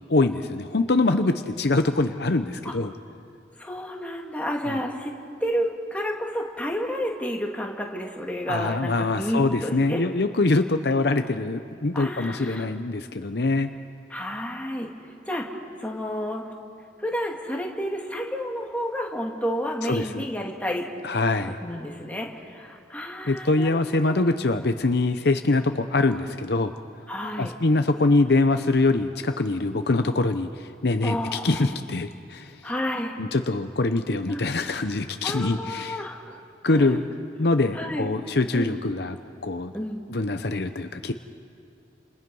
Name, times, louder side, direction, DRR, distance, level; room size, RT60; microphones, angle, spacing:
voice 1, 0.1-2.9 4.7-4.8 8.5-13.7 19.9-20.2 21.0-21.6 23.3-26.7 27.4-32.5 33.2-36.0 36.6-37.0 37.4-39.2 39.4-39.7 40.1-41.1, left 2 dB, 60° left, 8 dB, 0.8 m, -24 dB
voice 2, 3.6-5.1 5.4-10.0 11.9-12.7 14.1-14.9 15.2-16.4 17.0-20.9 21.6-24.2 27.1-27.5 29.7-29.9 31.0-31.6 32.6-33.2 34.3-34.5 35.2-36.4 36.7-37.1 37.7-38.1 38.5-38.8 39.7-40.1, equal, 10° left, -1 dB, 2.4 m, -30 dB
30.0 x 28.0 x 5.5 m, 2.5 s
head